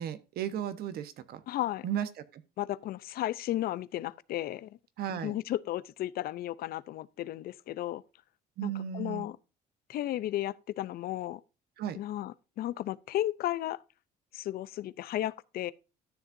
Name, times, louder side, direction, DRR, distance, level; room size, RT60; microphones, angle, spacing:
voice 1, 0.0-1.4 1.8-2.4 5.0-5.3 8.6-9.3 11.8-12.0, right 10 dB, 65° right, 1.1 m, -35 dB
voice 2, 1.5-1.9 2.6-4.7 5.1-8.0 8.6-9.4 9.9-11.4 11.9-13.8 14.3-15.7, left 13 dB, 65° left, 0.5 m, -34 dB
13.0 x 7.2 x 2.6 m
cardioid pair, 110°, 17 cm